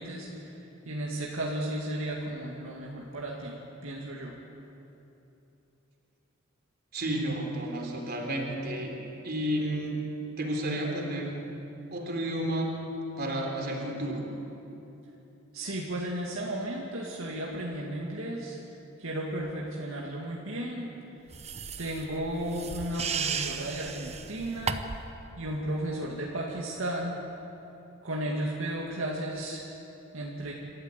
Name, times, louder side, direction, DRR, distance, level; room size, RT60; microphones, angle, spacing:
voice 1, 0.0-4.4 15.5-18.6 19.0-20.9 21.8-24.8 25.4-27.2 28.0-29.6 30.1-30.5, right 1 dB, 75° right, -3 dB, 2.3 m, -34 dB
voice 2, 6.9-8.9 9.2-10.0 10.4-11.4 11.9-12.7 13.2-14.3, right 1 dB, 50° right, 1 dB, 3.6 m, -31 dB
sound 1, 21.3-25.1, right 6 dB, 30° right, 0.9 m, -35 dB
27.0 x 13.5 x 8.4 m, 2.9 s
head